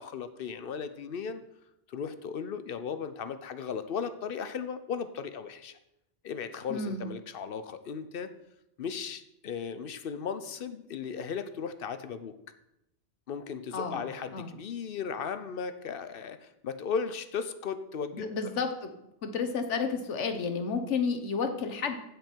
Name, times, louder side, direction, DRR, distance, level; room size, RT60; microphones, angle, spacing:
voice 1, 0.0-1.4 1.9-5.8 6.2-8.3 8.8-12.4 13.3-18.4, left 6 dB, 55° left, 11 dB, 0.8 m, -36 dB
voice 2, 6.7-7.1 13.7-14.0 14.3-14.5 18.1-18.9 19.2-22.0, left 5 dB, 85° left, 7 dB, 1.3 m, -31 dB
15.5 x 5.2 x 4.5 m, 0.86 s
omnidirectional pair, 1.2 m